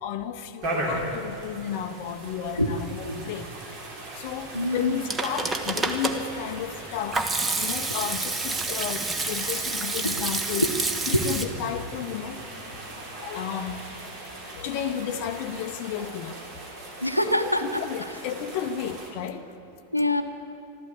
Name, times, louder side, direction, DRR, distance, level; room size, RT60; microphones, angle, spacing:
voice 1, 0.0-3.5 4.2-7.2 7.6-10.6 11.1-12.4 12.9-13.8 14.4-16.4 17.4-19.5, left 8 dB, 45° left, 8 dB, 0.6 m, -33 dB
sound 1, 0.6-19.1, right 1 dB, 45° right, 3.2 m, -38 dB
voice 2, 4.5-5.0 10.0-10.3 10.6-10.7 11.1-11.2 17.0-17.8 19.9-20.2, left 1 dB, 90° left, 7 dB, 0.8 m, -25 dB
Hands / Sink (filling or washing), 4.8-11.5, right 3 dB, 15° right, 1.1 m, -29 dB
13.5 x 12.0 x 8.3 m, 2.9 s
figure-of-eight pair, 90°, 0 cm